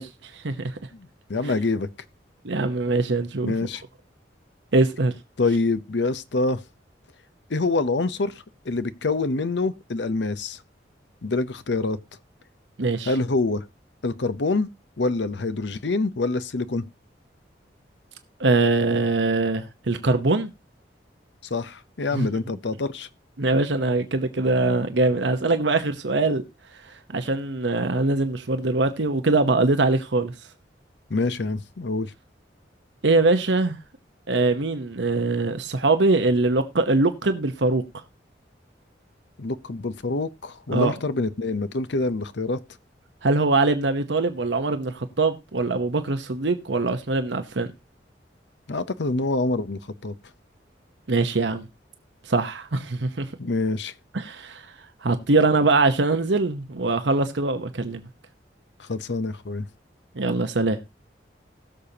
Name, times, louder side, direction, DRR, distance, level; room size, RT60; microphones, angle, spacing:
voice 1, 0.0-0.7 2.4-3.5 4.7-5.1 12.8-13.1 18.4-20.5 22.1-22.3 23.4-26.4 27.1-30.3 33.0-33.8 34.3-37.8 40.7-40.9 43.2-47.7 51.1-51.7 52.3-53.3 54.1-54.6 55.0-58.0 60.1-60.8, right 3 dB, 80° right, 1.0 m, -22 dB
voice 2, 0.9-1.9 3.4-3.8 5.4-6.6 7.5-8.3 8.6-10.6 11.2-12.0 13.1-13.6 14.0-14.7 15.0-16.9 21.5-23.1 31.1-32.1 39.4-42.6 48.7-50.1 53.4-53.9 58.8-59.7, left 3 dB, 75° left, 0.8 m, -26 dB
20.0 x 6.8 x 2.9 m
head